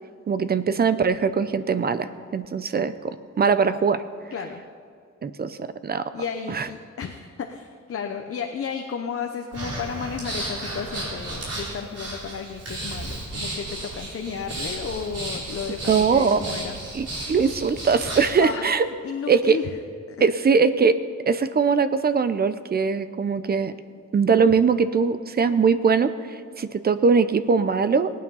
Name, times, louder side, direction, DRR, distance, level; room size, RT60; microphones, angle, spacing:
voice 1, 0.3-4.0 5.2-6.0 6.5-6.7 15.9-16.4 16.9-18.8 19.3-19.6 20.2-21.0 21.3-23.7 24.1-28.1, right 5 dB, 35° right, 12 dB, 0.6 m, -21 dB
voice 2, 4.3-4.6 6.1-16.8 18.4-18.7 19.0-19.7 20.1-20.4, left 6 dB, 50° left, 4 dB, 0.8 m, -33 dB
Breathing, 9.5-18.4, right 1 dB, 55° right, 4.1 m, -33 dB
18.5 x 9.4 x 5.5 m, 2.2 s
wide cardioid pair, 170°, 29 cm